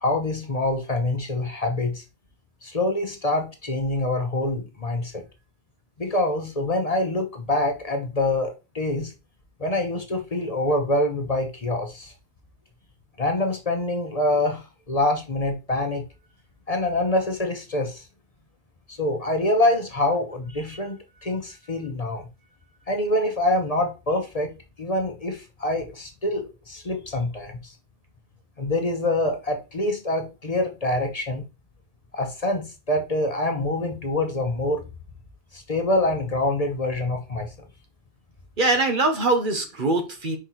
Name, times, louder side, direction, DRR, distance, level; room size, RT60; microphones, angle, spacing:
voice 1, 0.0-2.0 2.6-5.2 6.0-9.1 9.6-12.1 13.2-16.0 16.7-18.0 18.9-22.3 22.9-27.7 28.6-31.5 32.1-34.8 35.5-37.5, left 1 dB, 40° left, 1.0 m, -25 dB
voice 2, 38.6-40.4, right 2 dB, 55° right, 1.2 m, -22 dB
5.0 x 4.4 x 4.4 m
omnidirectional pair, 1.1 m